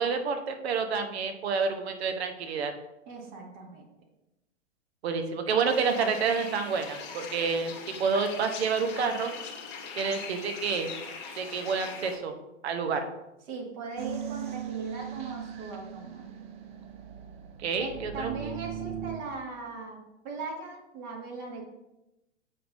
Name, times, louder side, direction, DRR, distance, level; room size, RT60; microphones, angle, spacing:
voice 1, 0.0-2.7 5.0-7.7 8.0-9.3 10.0-10.9 11.4-12.3 12.6-13.1 17.6-18.3, right 5 dB, 60° right, 6 dB, 0.9 m, -28 dB
voice 2, 3.0-3.8 13.5-16.3 17.8-20.0 20.2-21.6, right 3 dB, 40° right, 0 dB, 1.9 m, -39 dB
sound 1, 5.7-12.2, left 5 dB, 30° left, 1.1 m, -41 dB
sound 2, 14.0-19.2, right 9 dB, 20° right, 0.4 m, -39 dB
7.7 x 5.3 x 2.6 m, 0.92 s
figure-of-eight pair, 105°, 36 cm